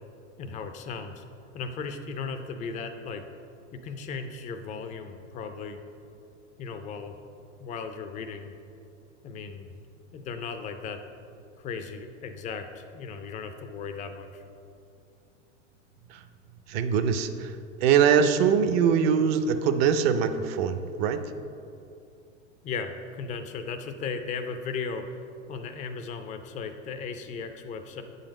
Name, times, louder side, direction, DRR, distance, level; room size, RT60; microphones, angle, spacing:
voice 1, 0.4-1.2 1.5-3.2 3.7-5.8 6.6-7.1 7.6-8.5 9.2-9.7 10.1-11.0 11.6-14.4 22.6-25.1 25.5-28.0, left 5 dB, 20° left, 7 dB, 0.3 m, -36 dB
voice 2, 16.7-21.2, right 7 dB, 55° right, 10 dB, 0.6 m, -23 dB
8.5 x 4.0 x 5.1 m, 2.6 s
hypercardioid pair, 110°, 38 cm